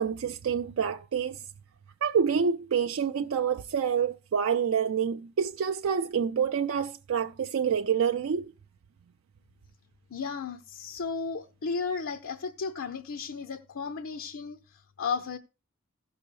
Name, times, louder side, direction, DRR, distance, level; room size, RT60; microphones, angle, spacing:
voice 1, 0.0-1.4 2.0-8.5, right 7 dB, 75° right, 0.4 m, -27 dB
voice 2, 10.1-15.4, left 5 dB, 75° left, 0.6 m, -34 dB
16.0 x 6.3 x 3.1 m
head